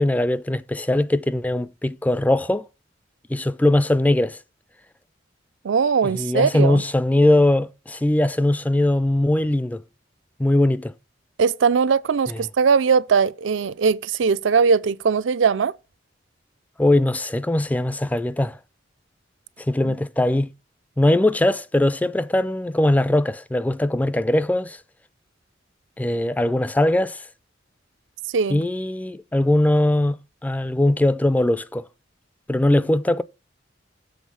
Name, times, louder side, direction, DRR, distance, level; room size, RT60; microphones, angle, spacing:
voice 1, 0.0-2.6 3.3-4.4 6.1-9.8 10.4-10.9 12.3-12.4 16.8-18.6 19.7-20.5 21.0-24.8 26.0-27.2 28.5-30.2 30.4-31.8 32.5-33.2, left 1 dB, 10° left, 0.3 m, -20 dB
voice 2, 5.6-6.8 11.4-15.7 19.8-19.9 28.3-28.6, right 5 dB, 80° right, 0.5 m, -20 dB
7.3 x 4.0 x 6.1 m
head